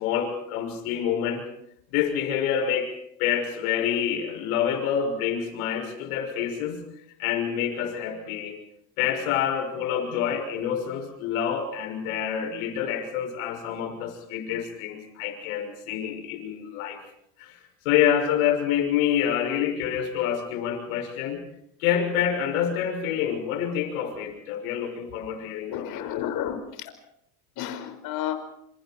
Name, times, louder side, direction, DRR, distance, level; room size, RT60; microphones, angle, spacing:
voice 1, 0.0-1.4 1.9-2.9 3.2-6.8 7.2-8.6 9.0-17.0 17.4-17.6 17.8-21.4 21.8-26.1, left 9 dB, 85° left, 4 dB, 6.3 m, -27 dB
voice 2, 25.7-26.6 27.6-28.4, left 11 dB, 60° left, 7 dB, 5.1 m, -31 dB
28.5 x 27.5 x 4.5 m, 0.74 s
supercardioid pair, 115°, 41 cm